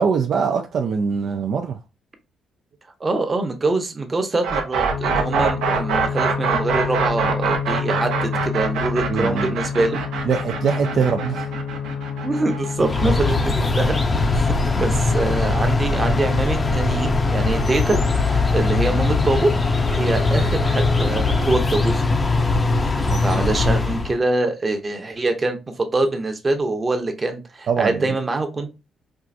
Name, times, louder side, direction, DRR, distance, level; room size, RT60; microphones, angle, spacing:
voice 1, 0.0-1.8 9.1-9.6 10.3-11.5 23.1-23.2 27.7-28.2, right 6 dB, 60° right, 0.4 m, -22 dB
voice 2, 3.0-10.0 12.2-14.0 14.3-19.5 19.9-22.1 23.2-28.7, right 2 dB, 30° right, 0.9 m, -24 dB
sound 1, 4.4-14.3, right 5 dB, 90° right, 0.8 m, -24 dB
sound 2, 4.9-21.0, left 6 dB, 85° left, 0.4 m, -30 dB
sound 3, 12.8-24.2, left 3 dB, 25° left, 0.6 m, -21 dB
4.5 x 2.5 x 2.5 m
cardioid pair, 90°, 0 cm